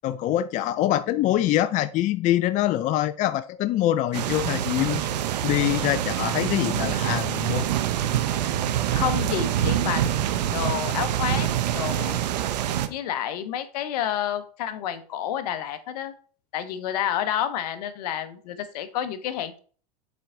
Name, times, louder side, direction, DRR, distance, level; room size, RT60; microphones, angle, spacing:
voice 1, 0.0-5.1 5.4-7.7, left 13 dB, 35° left, 12 dB, 0.4 m, -24 dB
sound 1, 4.1-12.9, right 11 dB, 80° right, 0.8 m, -25 dB
voice 2, 8.9-11.5 11.7-12.2 12.9-16.1 16.5-19.6, left 10 dB, 75° left, 11 dB, 1.0 m, -29 dB
7.4 x 4.5 x 3.8 m, 0.42 s
hypercardioid pair, 105°, 21 cm